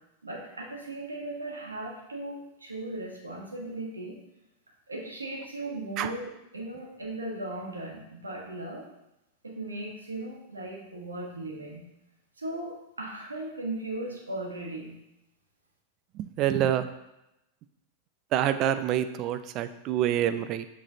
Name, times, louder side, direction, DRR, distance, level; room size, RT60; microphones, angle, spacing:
voice 1, 0.2-4.2 4.9-6.3 6.5-8.9 9.4-11.8 12.4-14.9, right 2 dB, 80° right, -2 dB, 1.5 m, -37 dB
voice 2, 16.1-16.9 18.3-20.7, right 11 dB, 35° right, 11 dB, 0.4 m, -27 dB
7.2 x 6.1 x 2.8 m, 0.90 s
figure-of-eight pair, 90°, 0 cm